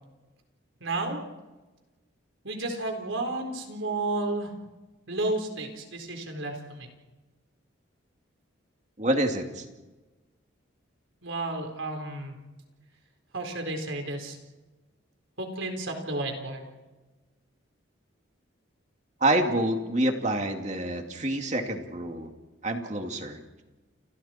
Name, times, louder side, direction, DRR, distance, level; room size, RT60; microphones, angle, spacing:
voice 1, 0.8-1.2 2.4-4.5 5.1-6.9 11.2-12.4 13.3-14.4 15.4-16.7, right 2 dB, 80° right, 3 dB, 4.3 m, -32 dB
voice 2, 9.0-9.6 19.2-22.3 22.6-23.4, right 1 dB, 35° right, 4 dB, 2.5 m, -27 dB
29.0 x 28.5 x 4.5 m, 1.2 s
head